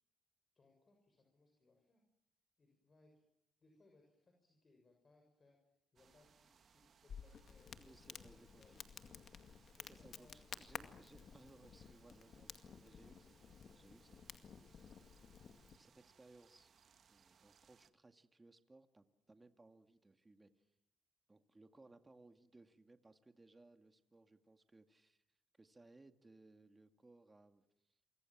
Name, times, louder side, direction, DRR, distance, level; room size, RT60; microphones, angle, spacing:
voice 1, 0.5-2.0 2.6-3.2 3.6-7.9 8.1-10.5 12.3-12.4, left 3 dB, 35° left, 2 dB, 6.8 m, -71 dB
sound 1, 6.0-17.9, right 7 dB, 55° right, 1.9 m, -70 dB
Crackle, 7.1-15.8, left 7 dB, 55° left, 2.2 m, -54 dB
voice 2, 7.7-8.8 9.8-15.2 15.8-16.7 17.1-20.7 21.3-25.2 25.6-28.0, right 2 dB, 20° right, 8 dB, 2.2 m, -64 dB
28.5 x 24.5 x 7.5 m, 0.76 s
cardioid pair, 90°, 0 cm